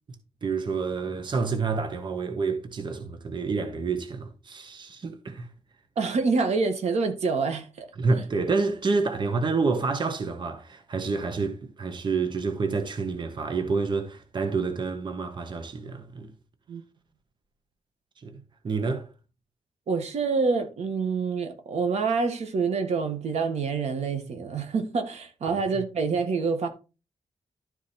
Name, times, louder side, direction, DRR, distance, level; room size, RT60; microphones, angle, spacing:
voice 1, 0.4-5.5 8.0-16.3 18.2-19.1 25.5-25.6, right 4 dB, 45° right, 1.2 m, -28 dB
voice 2, 5.9-7.9 16.7-16.8 19.9-26.7, right 4 dB, 75° right, 1.6 m, -27 dB
12.0 x 4.7 x 4.3 m
wide cardioid pair, 145°, 11 cm